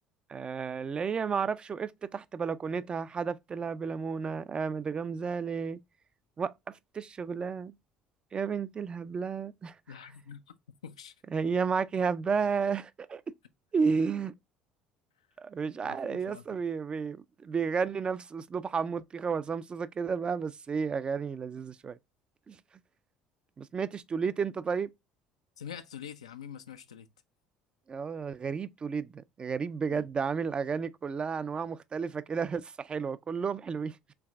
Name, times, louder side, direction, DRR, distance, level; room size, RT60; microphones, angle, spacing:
voice 1, 0.3-5.8 6.4-7.7 8.3-10.0 11.3-13.3 13.7-14.3 15.4-22.0 22.5-22.6 23.6-24.9 27.9-34.1, right 5 dB, 30° right, 0.3 m, -32 dB
voice 2, 9.9-10.6 10.8-11.1 15.8-16.4 25.6-27.1 29.9-30.1, left 8 dB, 90° left, 0.3 m, -45 dB
4.6 x 3.2 x 2.3 m
hypercardioid pair, 65°, 3 cm